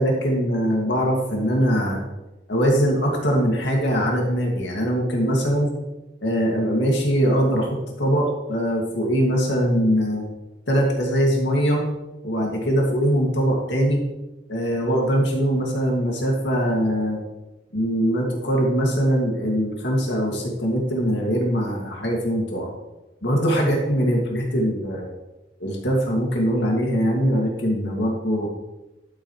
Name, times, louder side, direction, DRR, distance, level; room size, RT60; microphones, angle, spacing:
voice 1, 0.0-2.0 2.5-5.7 6.2-10.2 10.7-11.8 12.2-14.0 14.5-17.2 17.7-22.7 23.2-25.1 25.6-28.5, equal, 85° left, -1 dB, 2.2 m, -22 dB
12.0 x 8.3 x 3.2 m, 1.0 s
head